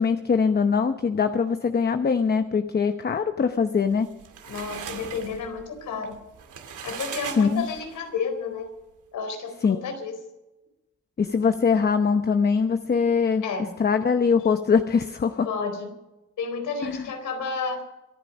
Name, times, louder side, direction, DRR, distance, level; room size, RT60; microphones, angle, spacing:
voice 1, 0.0-4.1 7.4-7.7 9.6-9.8 11.2-13.4 13.8-15.5 16.8-17.0, left 5 dB, 35° left, 8 dB, 0.8 m, -22 dB
sound 1, 3.9-8.1, right 7 dB, 80° right, 2.5 m, -39 dB
voice 2, 4.5-6.2 6.8-8.7 9.1-10.1 13.4-13.7 15.4-16.0 16.4-17.8, left 5 dB, 85° left, 6 dB, 4.1 m, -31 dB
25.0 x 10.0 x 5.2 m, 0.98 s
cardioid pair, 115°, 30 cm